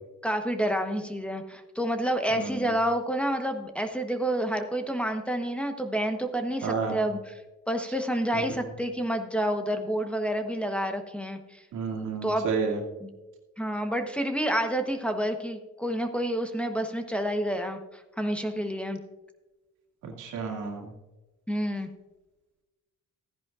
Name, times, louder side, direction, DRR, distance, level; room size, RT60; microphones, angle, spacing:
voice 1, 0.2-7.3 7.7-11.6 12.2-12.5 13.0-13.1 13.6-19.0 21.5-21.9, equal, 5° left, 4 dB, 1.0 m, -29 dB
voice 2, 2.3-2.7 6.6-7.0 8.3-8.4 11.7-12.8 20.0-20.9, right 5 dB, 90° right, 0 dB, 2.2 m, -31 dB
14.5 x 10.5 x 2.5 m, 1.1 s
cardioid pair, 90°, 30 cm